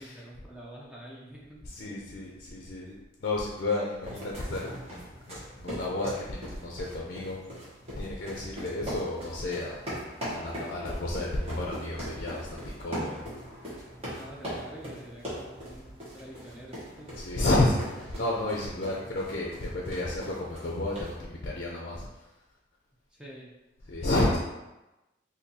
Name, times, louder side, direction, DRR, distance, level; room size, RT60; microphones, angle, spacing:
voice 1, 0.0-1.6 14.0-17.2 23.1-23.5 24.1-24.4, right 1 dB, 5° right, -5 dB, 0.4 m, -46 dB
voice 2, 1.6-7.4 8.0-13.2 17.1-22.3 23.9-24.4, left 2 dB, 50° left, -3 dB, 0.5 m, -31 dB
sound 1, 4.0-21.2, equal, 30° right, 1.1 m, -41 dB
4.1 x 2.6 x 2.7 m, 1.0 s
head